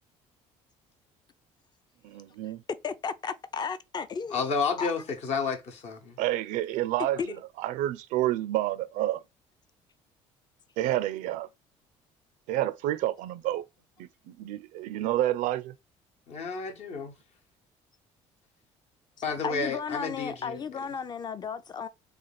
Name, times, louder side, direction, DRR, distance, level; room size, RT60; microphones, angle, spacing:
voice 1, 2.0-2.6 6.2-9.2 10.8-11.5 12.5-13.6 14.0-15.7, right 14 dB, 80° right, 0.4 m, -29 dB
voice 2, 2.8-4.4 4.8-4.9 19.4-21.9, left 6 dB, 35° left, 0.5 m, -34 dB
voice 3, 4.3-6.1 16.3-17.1 19.2-20.9, left 5 dB, 55° left, 1.0 m, -31 dB
3.2 x 2.4 x 3.9 m
cardioid pair, 95°, 13 cm